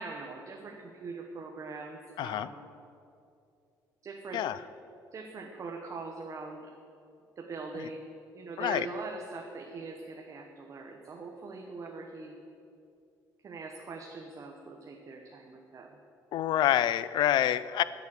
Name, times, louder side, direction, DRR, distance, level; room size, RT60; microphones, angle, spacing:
voice 1, 0.0-2.7 4.0-4.4 5.1-6.7 7.4-8.1 8.3-12.3 13.4-15.9, right 3 dB, 40° right, 1 dB, 1.0 m, -42 dB
voice 2, 2.2-2.5 4.3-4.6 7.7-7.9 8.6-8.9 16.3-17.8, left 12 dB, 70° left, 16 dB, 0.4 m, -27 dB
9.5 x 7.5 x 7.5 m, 2.6 s
cardioid pair, 115°, 8 cm